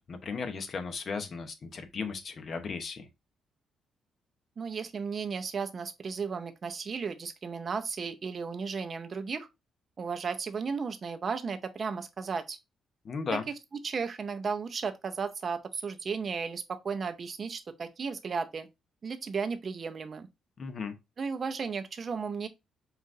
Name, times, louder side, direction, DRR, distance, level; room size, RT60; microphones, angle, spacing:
voice 1, 0.1-3.1 13.0-13.5 20.6-21.0, left 5 dB, 45° left, 0.8 m, -36 dB
voice 2, 4.6-9.5 10.0-12.6 13.5-13.6 13.8-18.7 19.0-20.3 21.2-22.5, right 5 dB, 45° right, 0.6 m, -34 dB
5.6 x 2.5 x 2.5 m
cardioid pair, 90°, 0 cm